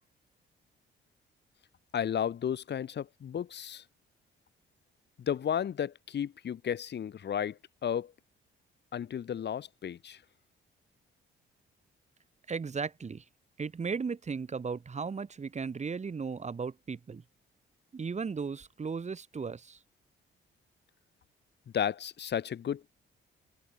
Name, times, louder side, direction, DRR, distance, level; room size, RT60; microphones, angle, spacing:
voice 1, 1.9-3.8 5.2-8.1 8.9-10.2 21.7-22.9, left 9 dB, 60° left, 6.6 m, -33 dB
voice 2, 12.5-13.2 13.6-17.2 17.9-19.8, right 5 dB, 35° right, 3.6 m, -36 dB
cardioid pair, 90°, 20 cm